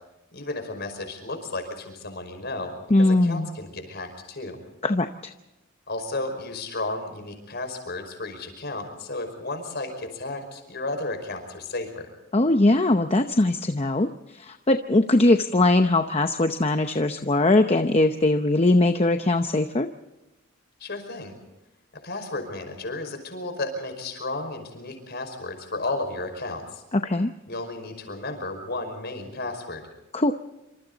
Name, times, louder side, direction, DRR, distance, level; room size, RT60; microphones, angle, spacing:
voice 1, 0.3-4.6 5.9-12.1 20.8-21.3 22.0-26.8 27.5-29.8, left 2 dB, 50° left, 6 dB, 5.3 m, -33 dB
voice 2, 2.9-3.5 4.8-5.3 12.3-19.9 27.0-27.3 30.1-30.3, left 2 dB, 30° left, 7 dB, 0.8 m, -21 dB
27.0 x 26.5 x 4.0 m, 0.95 s
head